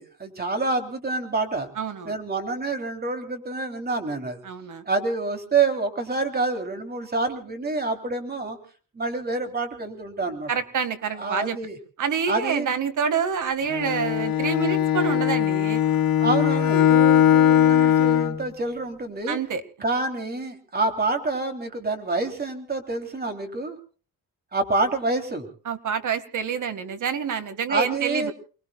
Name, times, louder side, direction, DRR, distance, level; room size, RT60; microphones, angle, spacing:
voice 1, 0.0-1.7 2.0-4.4 4.8-8.6 8.9-10.5 11.1-11.8 12.3-12.7 16.2-19.4 19.8-23.8 24.5-25.5 27.7-28.3, right 3 dB, 30° right, 5 dB, 3.4 m, -27 dB
voice 2, 1.8-2.2 4.4-4.8 10.5-11.6 12.0-15.8 19.3-19.6 25.7-28.3, right 7 dB, 60° right, 10 dB, 2.0 m, -27 dB
Bowed string instrument, 13.7-18.4, left 10 dB, 90° left, 1.6 m, -20 dB
29.5 x 20.5 x 2.4 m, 0.39 s
wide cardioid pair, 140°, 34 cm